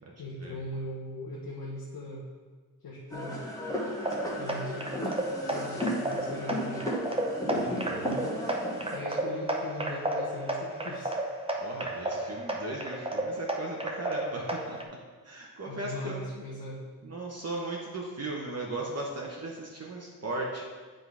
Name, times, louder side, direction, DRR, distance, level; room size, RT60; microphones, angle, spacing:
voice 1, 0.2-2.2 2.8-3.4 4.4-6.8 7.5-8.4 8.9-11.2 15.7-16.8, left 1 dB, 80° left, -5 dB, 1.0 m, -40 dB
sound 1, 3.1-9.0, equal, 10° left, 1.1 m, -35 dB
sound 2, 4.0-14.8, right 1 dB, 15° right, 0.6 m, -33 dB
voice 2, 11.6-14.8 15.2-16.4 17.0-20.6, right 2 dB, 45° right, -2 dB, 0.9 m, -37 dB
8.1 x 3.8 x 4.8 m, 1.5 s
wide cardioid pair, 120°, 36 cm